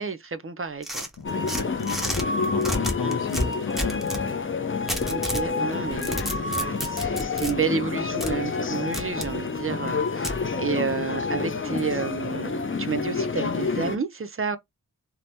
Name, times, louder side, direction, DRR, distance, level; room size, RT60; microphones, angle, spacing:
voice 1, 0.0-1.1 3.0-3.2 5.1-14.6, right 5 dB, 35° right, 0.4 m, -30 dB
sound 1, 0.8-2.2 2.6-4.2 4.9-5.5 5.9-7.5 8.2-8.3 8.9-9.3 10.2-10.4, equal, ahead, 0.8 m, -30 dB
voice 2, 1.2-4.3, left 5 dB, 80° left, 0.6 m, -34 dB
sound 2, 1.2-14.0, left 4 dB, 35° left, 0.5 m, -28 dB
3.2 x 2.0 x 2.7 m
wide cardioid pair, 60°, 37 cm